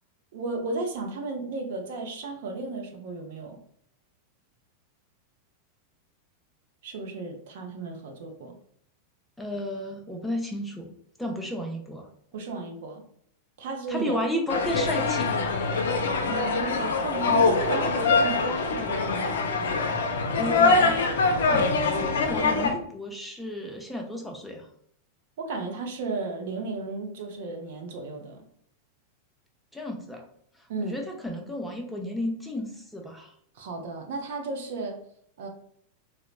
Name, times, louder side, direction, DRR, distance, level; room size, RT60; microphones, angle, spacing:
voice 1, 0.3-3.6 6.8-8.6 12.3-13.0 13.6-14.2 16.3-19.3 25.4-28.4 30.7-31.0 33.6-35.0 35.4-35.5, right 3 dB, 55° right, 3 dB, 0.6 m, -34 dB
voice 2, 9.4-10.9 11.2-12.1 13.9-15.3 20.4-24.7 29.7-30.2 30.8-33.3, left 1 dB, 5° left, 1 dB, 0.5 m, -33 dB
sound 1, 14.5-22.7, left 4 dB, 60° left, 0.4 m, -24 dB
3.9 x 2.1 x 2.4 m, 0.66 s
figure-of-eight pair, 90°, 0 cm